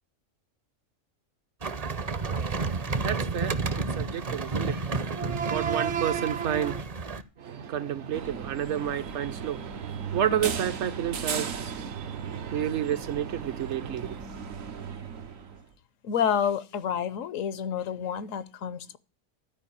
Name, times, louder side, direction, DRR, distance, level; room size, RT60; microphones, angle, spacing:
sound 1, 1.6-7.2, right 4 dB, 40° right, 0.6 m, -31 dB
voice 1, 2.5-6.8 7.4-14.2, right 9 dB, 65° right, 0.9 m, -30 dB
sound 2, 8.1-15.6, right 6 dB, 85° right, 1.4 m, -37 dB
voice 2, 16.0-19.0, left 8 dB, 80° left, 1.1 m, -29 dB
12.5 x 4.8 x 8.5 m
omnidirectional pair, 1.4 m